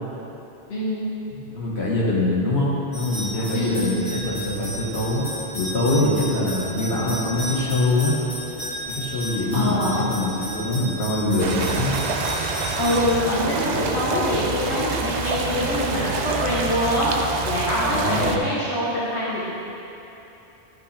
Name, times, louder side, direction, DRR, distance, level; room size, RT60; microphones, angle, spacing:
voice 1, 0.7-1.1 3.5-4.0 9.5-10.0 12.8-19.5, left 1 dB, 90° left, -8 dB, 1.5 m, -24 dB
voice 2, 1.3-5.2 5.5-8.1 8.9-12.0 17.9-18.4, left 1 dB, 70° left, -6 dB, 1.8 m, -24 dB
sound 1, 2.9-13.0, left 1 dB, 25° left, 1.3 m, -33 dB
sound 2, 11.4-18.4, right 4 dB, 55° right, 0.5 m, -27 dB
12.5 x 5.5 x 3.4 m, 2.9 s
omnidirectional pair, 1.1 m